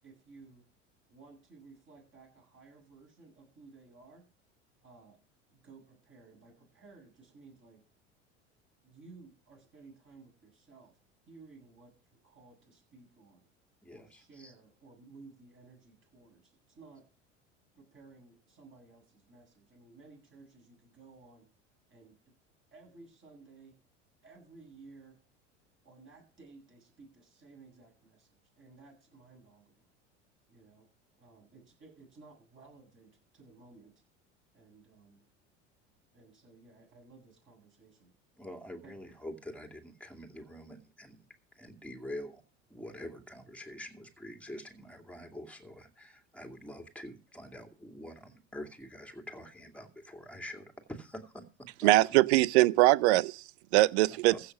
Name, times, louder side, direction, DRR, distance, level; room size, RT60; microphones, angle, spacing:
voice 1, 0.0-0.6 1.1-4.2 4.8-5.2 5.5-7.8 8.8-11.0 11.3-13.5 13.9-17.1 17.7-21.5 21.9-22.2 22.7-23.7 24.2-25.2 25.8-29.9 30.5-30.9 31.2-33.9 34.5-35.3 36.1-38.1 38.8-39.1, right 3 dB, 35° right, 7.9 m, -56 dB
voice 2, 13.8-14.5 38.4-41.3 41.5-42.4 42.7-51.4 51.8-51.9 54.1-54.4, left 1 dB, 5° left, 2.5 m, -46 dB
voice 3, 51.8-53.4 53.7-54.3, right 18 dB, 65° right, 0.6 m, -22 dB
15.0 x 6.5 x 6.2 m
hypercardioid pair, 75°, 36 cm